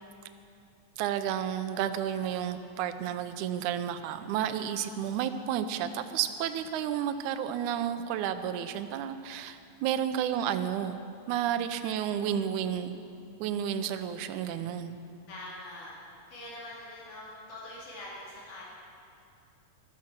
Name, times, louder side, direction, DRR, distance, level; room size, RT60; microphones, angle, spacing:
voice 1, 1.0-11.0 11.3-13.0 13.4-15.0, right 9 dB, 80° right, 9 dB, 2.1 m, -31 dB
voice 2, 10.1-10.7 15.3-18.6, left 1 dB, 90° left, -5 dB, 3.9 m, -44 dB
14.5 x 13.5 x 6.1 m, 2.6 s
omnidirectional pair, 3.5 m